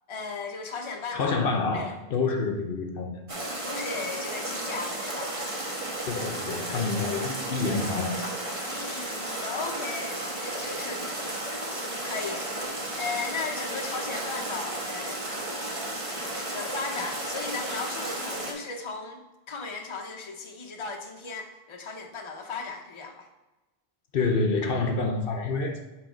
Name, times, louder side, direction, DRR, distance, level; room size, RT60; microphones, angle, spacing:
voice 1, 0.1-1.4 1.7-1.9 3.6-5.4 8.6-11.2 12.0-12.5 13.0-15.3 16.5-19.2 19.5-23.3, left 4 dB, 30° left, 3 dB, 0.8 m, -36 dB
voice 2, 1.1-3.4 6.0-8.2 24.1-25.8, left 3 dB, 65° left, 5 dB, 0.9 m, -28 dB
sound 1, 3.3-18.5, right 1 dB, 35° right, 1.2 m, -33 dB
7.4 x 3.4 x 5.0 m, 1.1 s
omnidirectional pair, 1.0 m